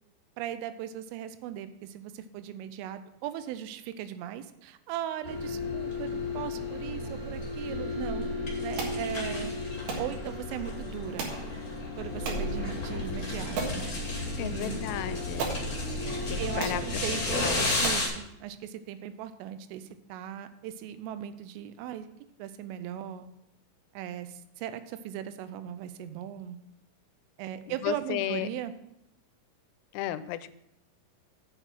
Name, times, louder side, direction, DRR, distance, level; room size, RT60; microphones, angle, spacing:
voice 1, 0.4-8.3 8.6-9.5 10.0-11.3 12.0-14.0 14.4-14.8 16.4-17.4 17.8-22.1 22.4-23.3 23.9-26.6 27.4-28.7, right 11 dB, 85° right, 11 dB, 3.1 m, -38 dB
sound 1, 5.2-18.1, left 2 dB, 35° left, 2.2 m, -33 dB
sound 2, 7.6-15.9, left 9 dB, 25° right, 0.9 m, -45 dB
sound 3, 8.8-9.0 9.9-10.1 11.2-11.4 12.3-12.5 13.0-13.1 13.6-13.8 14.9-15.0 15.4-15.6 16.3-16.4 16.6-16.8 17.4-17.5 17.8-18.1, right 4 dB, 60° right, 3.0 m, -34 dB
voice 2, 14.4-15.5 16.3-16.8 17.1-17.6 27.7-28.5 29.9-30.5, left 14 dB, 85° left, 13 dB, 3.2 m, -34 dB
7.9 x 6.6 x 6.0 m, 0.81 s
omnidirectional pair, 5.8 m